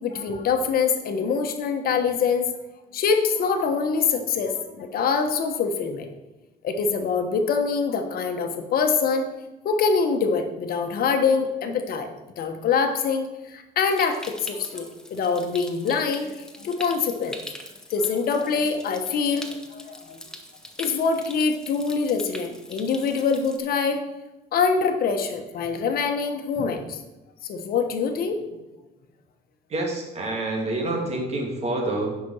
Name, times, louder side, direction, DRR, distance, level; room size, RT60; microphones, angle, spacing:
voice 1, 0.0-2.5 2.9-6.1 6.6-9.3 9.6-12.1 12.4-17.4 17.9-20.2 20.8-24.0 24.5-27.0 27.4-28.4, left 5 dB, 60° left, 5 dB, 1.2 m, -24 dB
Stream, 13.9-23.6, left 1 dB, 5° left, 1.3 m, -43 dB
voice 2, 29.7-32.3, right 2 dB, 40° right, 0 dB, 2.8 m, -27 dB
9.6 x 6.0 x 5.6 m, 1.1 s
cardioid pair, 110°, 17 cm